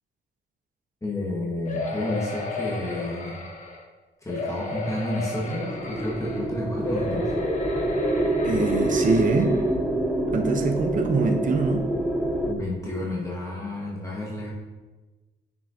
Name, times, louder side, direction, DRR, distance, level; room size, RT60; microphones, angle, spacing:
voice 1, 1.0-3.4 4.2-7.4 12.4-14.5, left 1 dB, 15° left, -5 dB, 1.5 m, -31 dB
sound 1, 1.6-3.8 4.3-6.4 6.8-9.7 10.3-10.4 10.6-10.7, left 2 dB, 40° left, 1.3 m, -33 dB
sound 2, 5.5-12.5, right 1 dB, 5° right, 0.7 m, -26 dB
voice 2, 8.4-9.6 10.3-11.8, right 4 dB, 40° right, 5 dB, 0.8 m, -24 dB
7.0 x 6.1 x 2.8 m, 1.2 s
cardioid pair, 90°, 20 cm